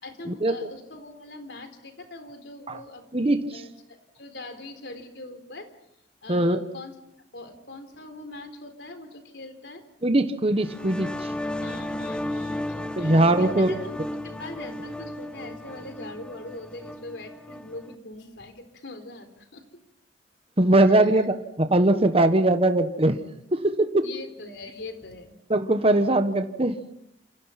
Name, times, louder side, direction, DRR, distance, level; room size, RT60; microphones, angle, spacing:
voice 1, 0.0-5.7 6.2-7.0 7.3-9.8 11.6-19.6 20.8-21.3 24.0-25.4, left 2 dB, 75° left, 8 dB, 4.0 m, -42 dB
voice 2, 6.3-6.6 10.0-11.3 13.0-13.7 20.6-23.2 23.5-24.0 25.5-26.8, right 1 dB, 35° right, 9 dB, 1.3 m, -21 dB
sound 1, 10.6-17.9, left 1 dB, 5° left, 1.0 m, -34 dB
28.5 x 27.5 x 5.9 m, 0.79 s
head